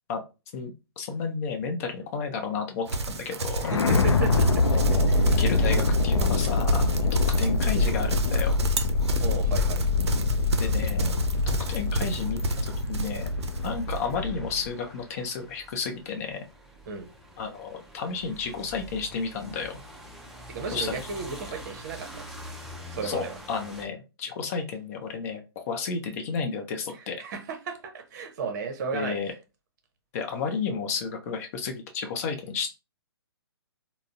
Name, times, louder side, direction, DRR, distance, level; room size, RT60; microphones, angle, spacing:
voice 1, 0.5-3.7 4.7-6.8 7.1-8.6 10.5-11.1 11.5-13.3 13.6-16.4 17.4-19.8 20.7-21.0 23.0-27.2 28.9-29.3 30.1-32.7, left 5 dB, 35° left, 0.6 m, -32 dB
Livestock farm animals working animals, 2.9-14.1, right 3 dB, 75° right, 0.5 m, -31 dB
sound 1, 3.6-14.7, left 3 dB, 75° left, 0.4 m, -25 dB
voice 2, 3.6-4.8 5.1-5.3 9.2-9.9 16.9-17.1 20.5-22.3 22.9-23.3 27.2-29.2, right 5 dB, 45° right, 0.7 m, -34 dB
sound 2, 5.4-23.9, equal, ahead, 0.4 m, -47 dB
3.7 x 2.0 x 2.3 m
figure-of-eight pair, 130°, 14 cm